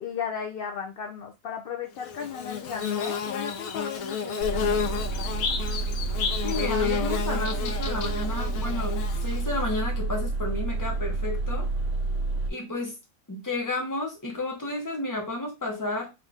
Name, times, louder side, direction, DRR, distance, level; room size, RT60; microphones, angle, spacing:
voice 1, 0.0-4.9, left 7 dB, 60° left, 2 dB, 0.6 m, -35 dB
Bird / Buzz, 2.0-9.7, left 7 dB, 85° left, 1.1 m, -31 dB
sound 1, 4.4-12.5, right 3 dB, 65° right, 1.2 m, -29 dB
voice 2, 6.4-11.7 12.5-13.0 13.3-16.1, left 2 dB, 15° left, 1 dB, 0.9 m, -32 dB
3.7 x 2.6 x 3.4 m, 0.24 s
omnidirectional pair, 1.4 m